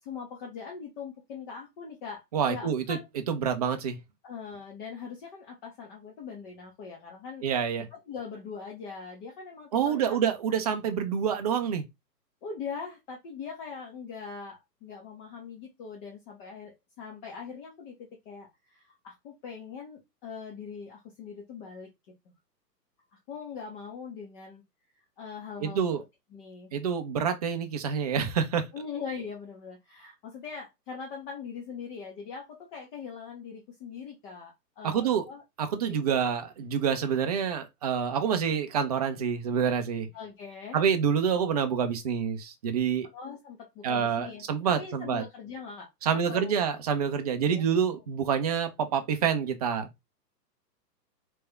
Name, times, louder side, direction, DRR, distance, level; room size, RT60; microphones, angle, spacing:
voice 1, 0.0-3.1 4.2-7.5 7.9-10.2 12.4-21.9 22.3-22.4 23.3-24.6 25.2-25.8 26.3-26.7 28.7-35.4 35.8-36.4 40.1-40.8 43.1-46.6 47.4-47.6, left 6 dB, 30° left, 1.1 m, -41 dB
voice 2, 2.3-3.0 3.3-4.0 7.4-7.9 9.7-11.8 25.6-26.0 26.7-28.7 34.8-35.3 35.6-40.1 40.7-43.1 43.8-45.2 46.0-49.9, right 7 dB, 25° right, 0.5 m, -27 dB
3.4 x 3.3 x 3.3 m
hypercardioid pair, 130°, 49 cm